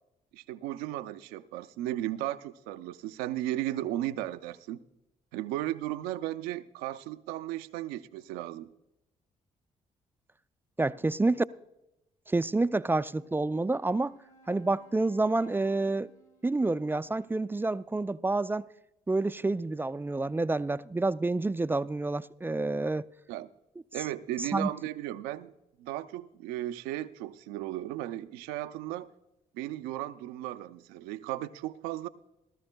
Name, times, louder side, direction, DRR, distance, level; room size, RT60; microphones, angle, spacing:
voice 1, 0.3-4.8 5.3-8.7 23.3-23.5 23.9-25.5 25.8-29.1 29.5-32.1, right 14 dB, 85° right, 0.5 m, -35 dB
voice 2, 10.8-11.4 12.3-14.1 14.5-16.1 16.4-18.6 19.1-23.0 24.4-24.7, right 2 dB, 15° right, 0.3 m, -28 dB
Wind instrument woodwind instrument, 13.0-17.9, right 3 dB, 55° left, 4.8 m, -60 dB
19.0 x 13.0 x 2.2 m
hypercardioid pair, 55°, 15 cm